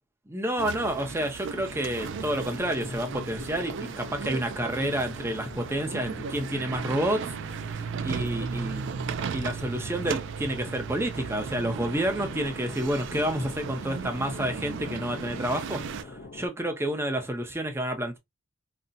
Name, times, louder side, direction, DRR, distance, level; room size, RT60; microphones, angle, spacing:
voice 1, 0.3-7.3 8.0-18.2, right 1 dB, 10° right, 0.7 m, -29 dB
sound 1, 0.6-16.0, right 6 dB, 60° right, 0.4 m, -36 dB
sound 2, 1.4-16.5, left 2 dB, 55° left, 0.6 m, -44 dB
4.0 x 2.1 x 2.4 m
head